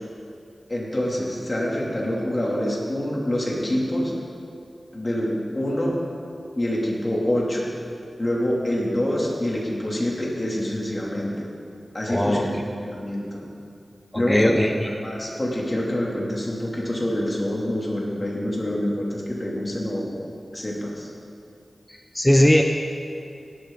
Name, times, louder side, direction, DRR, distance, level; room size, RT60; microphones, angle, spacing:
voice 1, 0.7-4.2 4.9-6.0 6.6-7.7 8.2-11.5 11.9-12.5 12.8-13.5 14.1-14.6 14.9-20.2 20.5-21.1, left 1 dB, 30° left, -4 dB, 3.0 m, -26 dB
voice 2, 12.1-12.5 14.1-14.7 22.1-22.6, equal, 10° left, 3 dB, 0.8 m, -18 dB
16.5 x 12.0 x 4.0 m, 2.5 s
wide cardioid pair, 80°, 0 cm